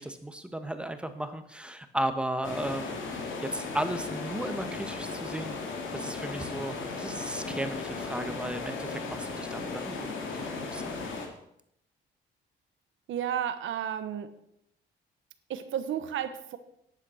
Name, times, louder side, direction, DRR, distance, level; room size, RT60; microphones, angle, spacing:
voice 1, 0.0-5.6 5.9-11.0, right 1 dB, 5° right, 9 dB, 1.3 m, -35 dB
sound 1, 2.4-11.3, left 4 dB, 75° left, 2.7 m, -36 dB
voice 2, 13.1-14.3 15.5-16.6, right 9 dB, 75° right, 10 dB, 1.1 m, -32 dB
11.0 x 8.4 x 6.4 m, 0.76 s
cardioid pair, 90°, 20 cm